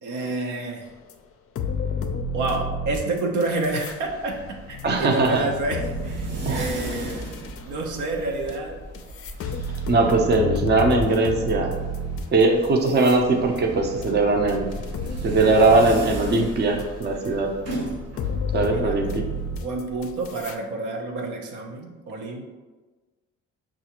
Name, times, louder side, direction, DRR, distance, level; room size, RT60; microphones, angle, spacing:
voice 1, 0.0-0.9 2.3-7.2 7.6-8.8 18.7-19.0 19.5-22.4, right 2 dB, 80° right, 1 dB, 0.7 m, -29 dB
sound 1, 1.1-1.2 1.5-4.0 4.3-7.6 8.5-8.6 8.9-16.4 16.8-17.3 17.7-17.8 18.2-20.5, left 2 dB, 50° left, 0.4 m, -31 dB
sound 2, 3.8-20.5, right 1 dB, 55° right, 1.0 m, -37 dB
voice 2, 4.8-5.4 6.4-6.7 9.9-11.7 12.3-14.6 15.2-17.5 18.5-19.2, right 3 dB, 35° right, 2 dB, 0.5 m, -20 dB
5.5 x 2.5 x 2.9 m, 1.3 s
cardioid pair, 90°, 30 cm